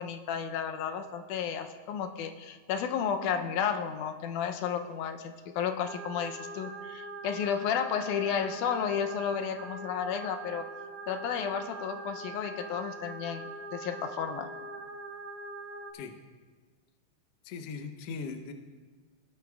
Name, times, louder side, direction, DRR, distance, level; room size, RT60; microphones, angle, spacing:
voice 1, 0.0-10.7 11.1-14.5, left 7 dB, 90° left, 7 dB, 2.1 m, -32 dB
sound 1, 5.8-15.9, right 3 dB, 70° right, 1.8 m, -43 dB
voice 2, 17.5-18.5, left 5 dB, 70° left, 6 dB, 1.7 m, -39 dB
17.5 x 10.5 x 2.3 m, 1.4 s
omnidirectional pair, 3.5 m